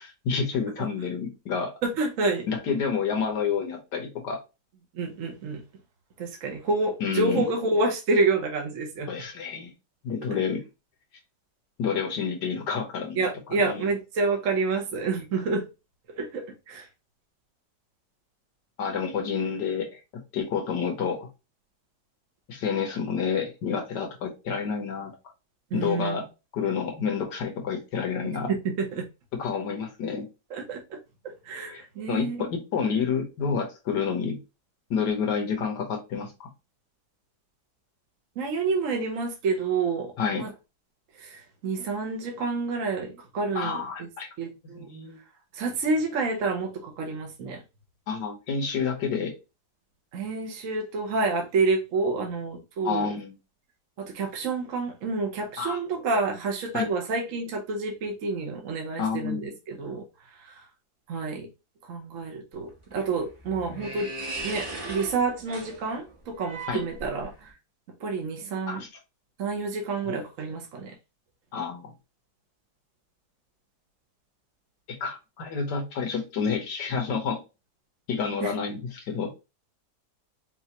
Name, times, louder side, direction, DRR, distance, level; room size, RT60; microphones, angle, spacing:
voice 1, 0.3-1.7 2.5-4.4 7.0-7.4 9.1-9.7 10.0-10.7 11.8-13.3 13.6-13.9 18.8-20.0 20.3-21.3 22.5-25.1 25.7-26.3 26.5-28.5 29.4-30.3 31.7-34.4 34.9-36.5 40.2-40.4 43.6-44.3 44.7-45.2 48.1-49.3 52.8-53.3 55.6-55.8 56.7-56.9 59.0-59.5 66.7-66.8 68.7-68.9 70.1-70.2 71.5-71.9 75.0-77.4 78.1-79.3, left 6 dB, 85° left, 1.8 m, -29 dB
voice 2, 1.8-2.5 4.9-5.6 6.2-9.1 13.1-15.6 16.2-16.9 25.7-26.2 28.5-29.0 30.5-31.0 31.2-32.4 38.4-40.5 41.2-44.1 44.4-44.9 45.5-47.6 50.1-53.1 54.0-60.0 60.4-60.6 61.1-61.5 61.8-64.1 64.4-67.5 68.0-68.8 69.4-71.0 78.4-78.5, right 3 dB, 55° right, 1.1 m, -28 dB
sound 1, 62.5-67.5, right 2 dB, 25° right, 0.8 m, -38 dB
5.4 x 2.6 x 2.9 m
omnidirectional pair, 1.8 m